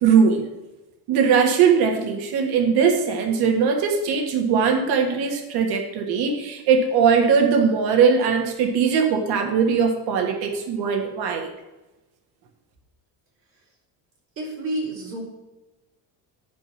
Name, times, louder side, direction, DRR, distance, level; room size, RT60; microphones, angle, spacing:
voice 1, 0.0-0.5 1.1-11.5, right 6 dB, 70° right, 3 dB, 1.7 m, -20 dB
voice 2, 14.4-15.2, right 1 dB, 35° right, -4 dB, 3.8 m, -29 dB
10.0 x 5.3 x 5.9 m, 1.1 s
cardioid pair, 175°, 40 cm